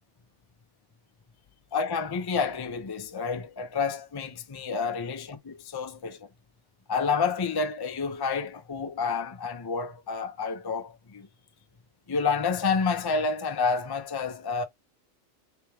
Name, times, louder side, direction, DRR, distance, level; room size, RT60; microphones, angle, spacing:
voice 1, 1.7-6.3 6.9-11.3 12.1-14.6, left 5 dB, 30° left, 0.4 m, -29 dB
3.4 x 3.2 x 3.0 m
omnidirectional pair, 1.4 m